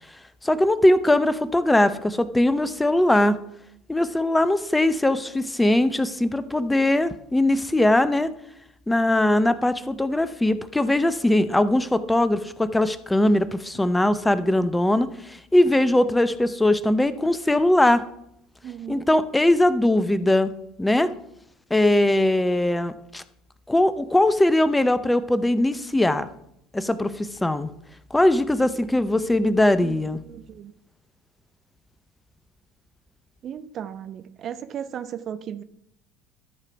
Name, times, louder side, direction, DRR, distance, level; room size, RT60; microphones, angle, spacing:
voice 1, 0.4-3.4 3.9-8.3 8.9-18.0 18.9-20.5 20.8-21.1 21.7-23.2 23.7-26.3 26.7-27.7 28.1-30.2, left 1 dB, 10° left, 14 dB, 0.7 m, -20 dB
voice 2, 18.6-19.1 29.8-30.0 30.2-30.7 33.4-35.6, right 9 dB, 45° right, 12 dB, 0.6 m, -35 dB
12.5 x 4.9 x 5.9 m, 0.76 s
figure-of-eight pair, 65°, 0 cm